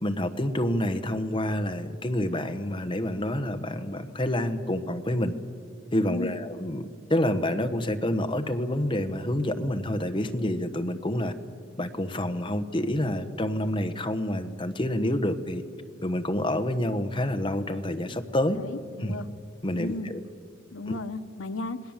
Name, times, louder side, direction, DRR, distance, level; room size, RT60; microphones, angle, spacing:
voice 1, 0.0-5.3 5.9-6.8 7.1-11.3 11.8-15.6 16.0-18.6 19.0-19.1 19.6-20.2 20.9-21.0, left 1 dB, 25° left, 8 dB, 1.2 m, -28 dB
voice 2, 18.5-19.3 19.7-20.1 20.7-21.8, left 2 dB, 85° left, 8 dB, 1.1 m, -34 dB
27.5 x 19.5 x 7.4 m, 2.3 s
head